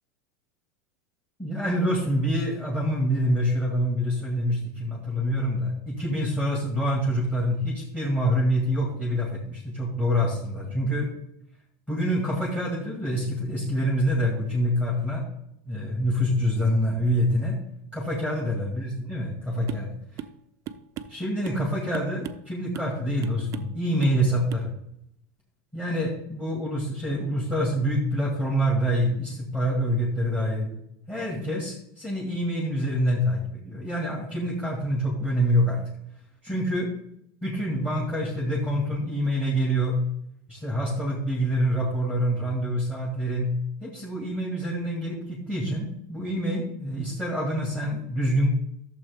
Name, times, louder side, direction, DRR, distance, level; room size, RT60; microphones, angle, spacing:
voice 1, 1.4-11.1 11.9-15.3 15.7-17.6 17.9-19.9 21.1-24.7 25.7-30.7 31.1-35.8 36.4-36.9 37.4-40.0 40.5-43.5 43.8-48.5, equal, 10° left, -3 dB, 2.0 m, -26 dB
sound 1, 19.7-19.9 20.2-20.4 20.7-21.6 21.9-22.5 22.7-23.0 23.2-23.8 24.0-24.2 24.5-24.7, right 10 dB, 35° right, 0.5 m, -38 dB
12.0 x 7.1 x 3.5 m, 0.75 s
supercardioid pair, 155°, 10 cm